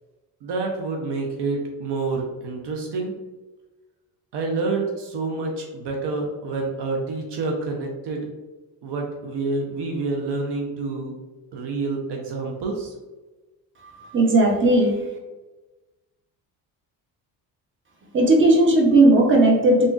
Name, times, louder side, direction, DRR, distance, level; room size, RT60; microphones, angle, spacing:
voice 1, 0.4-3.1 4.3-8.3 8.8-11.1 11.5-12.9, right 3 dB, 60° right, 1 dB, 0.7 m, -28 dB
voice 2, 13.8-15.0 18.1-19.9, right 2 dB, 25° right, 0 dB, 0.8 m, -16 dB
3.5 x 2.5 x 2.4 m, 1.2 s
supercardioid pair, 65°, 46 cm